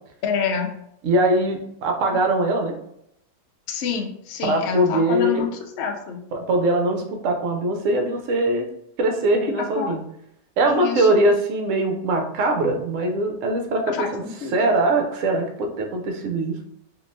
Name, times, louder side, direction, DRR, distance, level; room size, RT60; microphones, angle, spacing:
voice 1, 0.2-0.7 3.7-5.5 5.8-6.2 9.5-10.0 10.7-11.1 13.9-14.7, left 6 dB, 85° left, 3 dB, 0.6 m, -27 dB
voice 2, 1.0-2.7 4.4-5.4 6.3-8.7 9.0-10.0 10.6-14.2 14.5-16.5, right 1 dB, 65° right, 3 dB, 0.8 m, -21 dB
3.6 x 2.6 x 2.6 m, 0.74 s
omnidirectional pair, 1.9 m